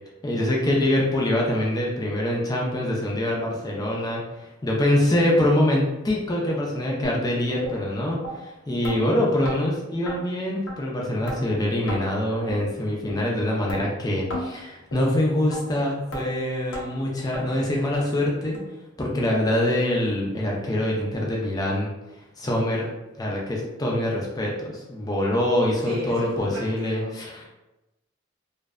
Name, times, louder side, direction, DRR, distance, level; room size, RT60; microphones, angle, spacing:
voice 1, 0.2-18.6 19.0-21.9 22.4-22.9 23.2-27.4, left 1 dB, 20° left, -2 dB, 0.4 m, -24 dB
sound 1, 7.0-7.2 7.6-7.8 8.2-8.3 8.8-9.0 9.4-9.6 10.1-10.2 10.7-10.8 11.3-11.4 11.9-12.0 12.5-12.6 13.1-13.2 13.7-13.8 14.3-14.5 14.9-15.0 15.5-15.6 16.1-16.2 16.7-16.9 17.3-17.4 17.9-18.0 18.5-18.6 19.2-19.3 19.8-19.9, equal, 85° left, 0.6 m, -33 dB
voice 2, 25.8-27.2, right 1 dB, 80° right, -2 dB, 0.6 m, -34 dB
2.5 x 2.1 x 2.3 m, 1.0 s
head